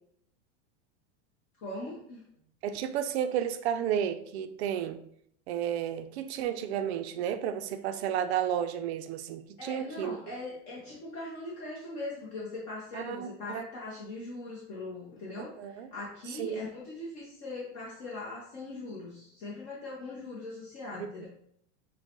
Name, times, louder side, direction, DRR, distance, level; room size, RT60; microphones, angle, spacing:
voice 1, 1.6-2.2 9.6-21.3, left 2 dB, 35° left, -5 dB, 0.8 m, -40 dB
voice 2, 2.6-5.0 5.5-10.2 12.9-13.7 15.4-15.9 16.4-16.6 21.0-21.3, right 9 dB, 65° right, 10 dB, 0.5 m, -32 dB
6.6 x 2.2 x 2.9 m, 0.69 s
supercardioid pair, 175°, 34 cm